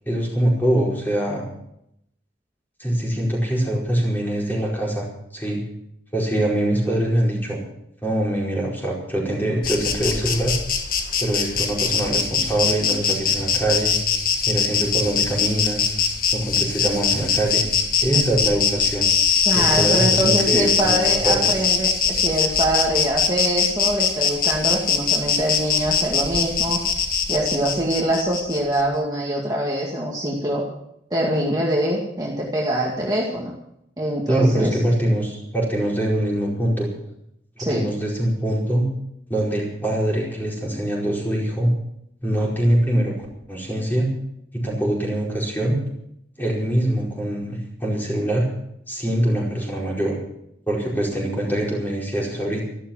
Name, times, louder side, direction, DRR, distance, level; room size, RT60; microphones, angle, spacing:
voice 1, 0.0-1.4 2.8-5.6 6.1-7.6 8.0-10.6 11.2-13.9 14.4-15.9 16.3-17.6 18.0-19.1 19.5-21.7 34.3-36.9 37.6-38.9 39.3-41.7 42.2-43.1 43.5-44.1 44.5-45.8 46.4-48.5 48.9-50.2 50.7-52.7, right 1 dB, 10° left, -3 dB, 4.9 m, -23 dB
Insect, 9.6-28.8, left 6 dB, 50° left, 1.6 m, -22 dB
voice 2, 19.5-26.8 27.3-30.6 31.1-33.5 34.0-34.8 37.6-37.8, right 1 dB, 20° right, -3 dB, 2.1 m, -24 dB
13.5 x 12.5 x 7.4 m, 0.77 s
head